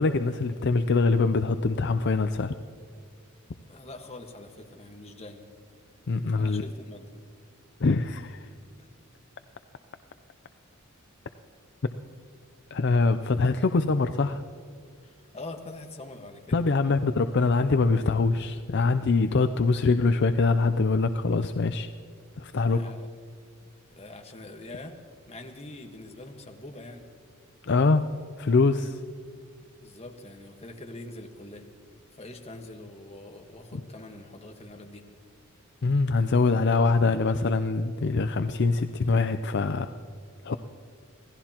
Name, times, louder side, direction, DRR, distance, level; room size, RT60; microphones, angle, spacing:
voice 1, 0.0-2.5 6.1-6.6 7.8-8.5 12.7-14.4 16.5-21.9 22.4-22.8 27.6-28.1 28.4-29.0 33.7-33.8 35.8-39.9 40.4-40.5, left 3 dB, 55° left, 9 dB, 0.5 m, -24 dB
voice 2, 3.7-5.5 6.4-7.1 8.8-8.9 15.0-16.6 22.6-23.1 23.9-24.9 25.3-27.0 29.8-31.7 32.1-35.0, left 2 dB, 30° left, 3 dB, 1.4 m, -44 dB
27.0 x 17.5 x 3.0 m, 2.2 s
head